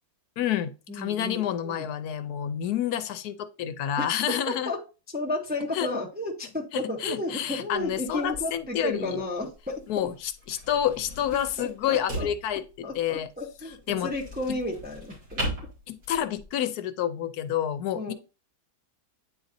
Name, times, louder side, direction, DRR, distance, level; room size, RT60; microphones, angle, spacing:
voice 1, 0.4-4.7 5.7-5.9 6.7-9.2 9.9-13.3 13.9-14.1 15.9-18.1, left 10 dB, 80° left, 1.1 m, -29 dB
voice 2, 0.9-1.9 4.0-4.1 4.5-4.8 5.1-10.1 11.6-12.3 12.8-13.8 14.0-15.4 17.9-18.1, left 1 dB, 10° right, 0.5 m, -33 dB
sound 1, 7.7-16.5, right 1 dB, 70° right, 3.2 m, -39 dB
9.2 x 4.0 x 2.6 m
omnidirectional pair, 1.7 m